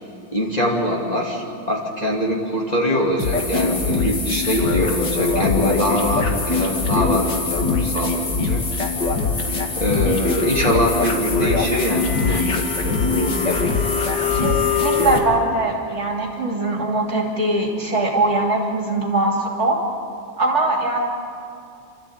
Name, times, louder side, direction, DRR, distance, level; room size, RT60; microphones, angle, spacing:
voice 1, 0.3-8.6 9.8-13.8, left 1 dB, 20° left, -3 dB, 2.5 m, -23 dB
sound 1, 3.2-15.2, left 4 dB, 65° left, 2.6 m, -22 dB
voice 2, 14.3-19.8 20.4-21.1, right 2 dB, 35° right, -1 dB, 3.1 m, -21 dB
28.5 x 13.5 x 8.7 m, 2.6 s
omnidirectional pair, 2.1 m